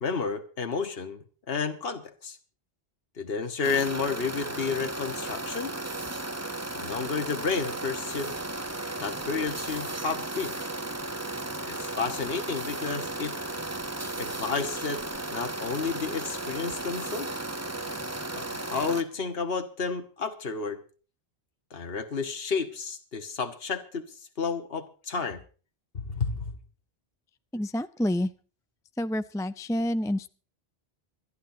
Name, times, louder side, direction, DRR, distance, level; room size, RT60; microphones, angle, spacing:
voice 1, 0.0-2.4 3.2-5.7 6.8-8.3 9.0-10.5 11.6-13.4 14.2-15.0 15.3-17.3 18.4-20.8 21.7-24.1 24.4-25.4 25.9-26.5, left 5 dB, 65° left, 6 dB, 1.6 m, -31 dB
sound 1, 3.6-19.0, right 2 dB, 15° right, 0.9 m, -35 dB
voice 2, 27.5-28.3 29.0-30.3, left 1 dB, 5° left, 12 dB, 0.4 m, -28 dB
26.5 x 11.5 x 2.8 m, 0.38 s
omnidirectional pair, 1.1 m